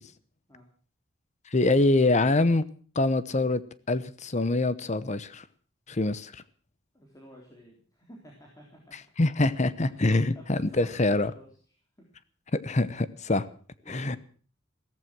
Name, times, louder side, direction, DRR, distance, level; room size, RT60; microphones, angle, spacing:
voice 1, 1.5-2.6 2.9-3.6 3.9-5.5 5.9-6.4 9.2-11.3 12.5-13.5 13.9-14.2, left 2 dB, 35° left, 0.9 m, -24 dB
voice 2, 6.9-8.9 9.7-11.5 12.0-12.1 13.8-14.2, equal, 20° left, 3.6 m, -52 dB
16.0 x 14.5 x 6.1 m
head